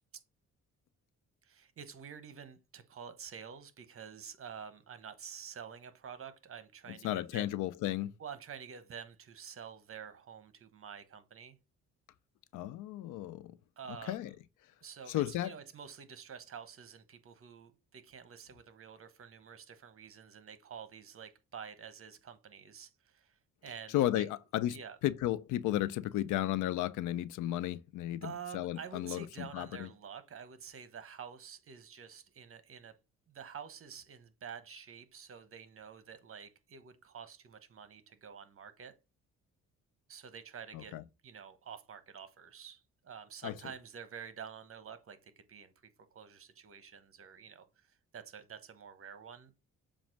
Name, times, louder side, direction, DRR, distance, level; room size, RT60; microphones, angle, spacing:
voice 1, 1.4-7.5 8.2-11.6 13.8-14.3 14.8-23.4 23.6-24.3 24.7-25.0 28.2-32.9 33.3-38.9 40.1-40.9 41.2-45.7 46.1-47.7 48.1-49.5, right 7 dB, 45° right, 1.1 m, -48 dB
voice 2, 6.9-8.1 12.5-13.6 14.1-14.3 15.1-15.5 23.9-24.8 25.0-29.9 40.7-41.0 43.4-43.5, left 13 dB, 90° left, 0.6 m, -34 dB
7.3 x 2.5 x 5.7 m
cardioid pair, 90°, 30 cm